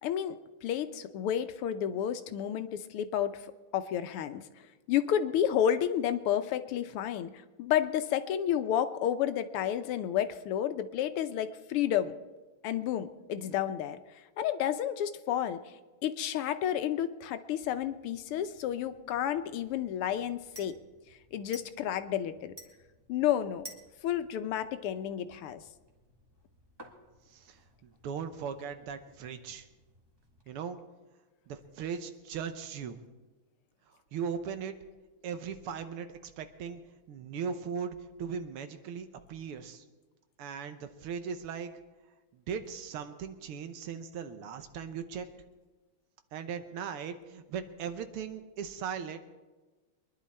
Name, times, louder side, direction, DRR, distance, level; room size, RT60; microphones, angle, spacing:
voice 1, 0.0-3.4 3.7-4.4 4.9-7.3 7.6-12.1 12.6-14.0 14.4-15.6 16.0-20.8 21.3-22.5 23.1-23.6 24.0-25.6, left 10 dB, 90° left, 11 dB, 1.7 m, -31 dB
sound 1, 17.6-30.4, equal, 10° right, 1.5 m, -56 dB
voice 2, 27.3-29.7 30.5-30.8 31.5-33.0 34.1-34.8 35.2-36.8 37.1-39.8 40.4-41.7 42.3-45.3 46.3-49.2, right 7 dB, 85° right, 9 dB, 1.9 m, -38 dB
24.0 x 11.0 x 4.3 m, 1.2 s
omnidirectional pair, 2.4 m